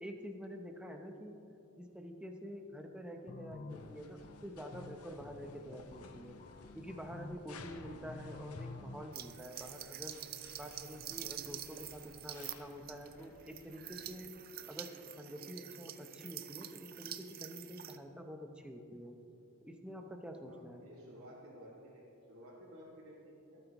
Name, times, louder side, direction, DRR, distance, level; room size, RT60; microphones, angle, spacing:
voice 1, 0.0-1.4 1.8-6.4 6.7-10.2 10.6-14.3 14.7-19.2 19.6-20.9, equal, 5° right, 3 dB, 0.8 m, -47 dB
sound 1, 3.3-9.0, left 3 dB, 35° left, 0.4 m, -49 dB
sound 2, 3.7-14.3, left 3 dB, 90° left, 0.8 m, -58 dB
sound 3, 9.1-18.0, right 12 dB, 40° right, 0.5 m, -47 dB
voice 2, 20.5-23.6, equal, 70° right, -8 dB, 2.5 m, -54 dB
24.5 x 8.9 x 3.0 m, 2.8 s
head